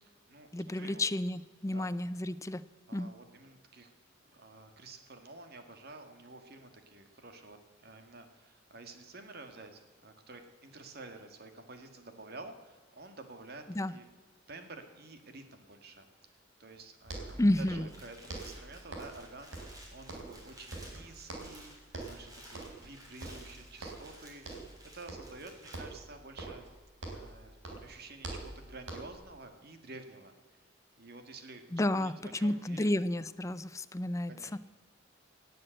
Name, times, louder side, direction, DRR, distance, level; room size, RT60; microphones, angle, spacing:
voice 1, 0.0-0.5 0.7-1.0 1.7-1.9 2.9-3.9 4.3-14.1 14.5-21.7 22.0-24.7 24.9-26.7 27.1-27.6 27.8-30.6 31.0-31.6 31.9-32.9 34.3-34.6, right 3 dB, 55° right, 7 dB, 1.8 m, -50 dB
voice 2, 0.5-2.6 2.9-3.1 13.7-13.9 17.4-17.9 31.7-32.1 32.4-34.6, left 1 dB, 15° left, 14 dB, 0.5 m, -31 dB
sound 1, 16.8-16.9 17.0-18.0 18.3-19.2 19.5-20.5 20.7-21.6 21.9-22.2 22.5-22.9 23.2-24.1 24.4-24.8 25.1-25.4 25.7-27.4 27.6-29.3, right 2 dB, 75° right, 4.0 m, -44 dB
sound 2, 17.5-25.8, right 1 dB, 20° right, 3.5 m, -55 dB
18.0 x 7.9 x 7.8 m, 1.4 s
head